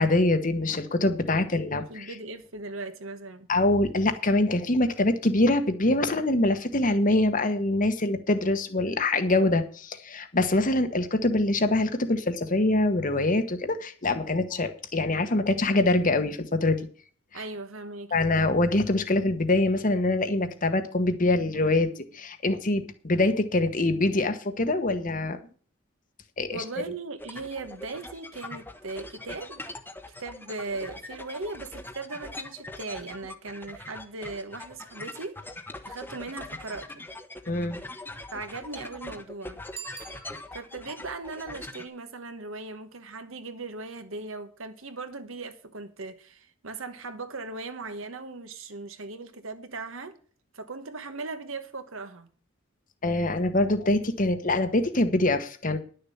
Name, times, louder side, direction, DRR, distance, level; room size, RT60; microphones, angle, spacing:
voice 1, 0.0-2.1 3.5-16.8 18.1-25.4 26.4-26.6 37.5-37.8 53.0-55.8, left 2 dB, 40° left, 1.2 m, -24 dB
voice 2, 1.7-3.5 17.3-18.3 26.5-29.6 30.2-35.4 35.8-37.0 38.3-39.6 40.5-50.2 50.5-52.3, right 3 dB, 70° right, 1.3 m, -38 dB
sound 1, 27.2-41.9, left 2 dB, 10° left, 1.0 m, -42 dB
Bicycle bell, 39.7-40.9, right 9 dB, 25° right, 1.3 m, -44 dB
11.0 x 6.7 x 7.2 m
head